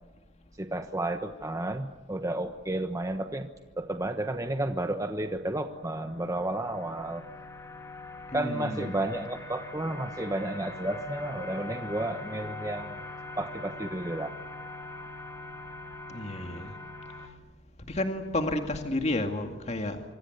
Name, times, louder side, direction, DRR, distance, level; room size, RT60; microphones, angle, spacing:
voice 1, 0.6-3.5 3.8-7.2 8.3-13.0 13.4-14.3, right 1 dB, 20° right, 6 dB, 1.1 m, -32 dB
sound 1, 5.2-17.3, left 2 dB, 15° left, 3.0 m, -43 dB
voice 2, 8.3-9.0 16.1-16.7 17.9-20.0, left 1 dB, 40° left, 5 dB, 2.2 m, -31 dB
26.0 x 25.5 x 8.0 m, 1.2 s
head